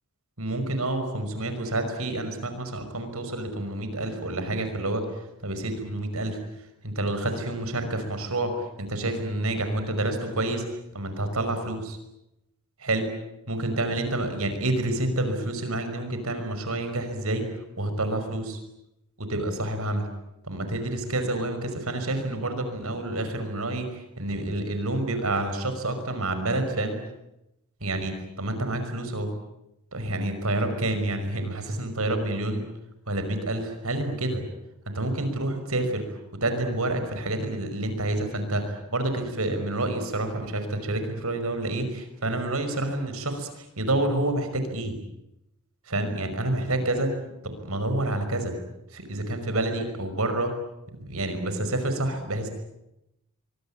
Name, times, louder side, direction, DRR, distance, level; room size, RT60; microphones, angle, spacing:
voice 1, 0.4-5.1 5.4-6.4 6.8-10.6 10.9-12.0 12.8-13.1 13.5-17.5 17.8-18.6 19.2-20.1 20.4-27.0 27.8-29.3 29.9-32.6 33.1-34.4 34.9-36.0 36.4-45.0 45.9-47.1 47.4-48.5 48.9-50.5 51.0-52.5, right 1 dB, 80° right, 8 dB, 5.7 m, -28 dB
24.5 x 23.5 x 8.8 m, 0.88 s
head